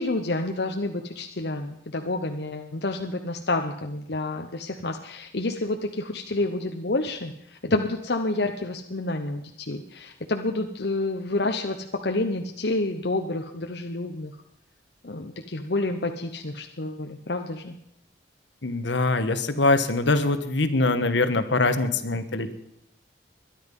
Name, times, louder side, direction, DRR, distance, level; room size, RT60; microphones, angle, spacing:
voice 1, 0.0-14.3 15.0-17.8, left 2 dB, 65° left, 4 dB, 1.0 m, -29 dB
voice 2, 18.6-22.5, left 2 dB, 80° left, 10 dB, 1.3 m, -23 dB
22.0 x 10.5 x 5.5 m, 0.78 s
head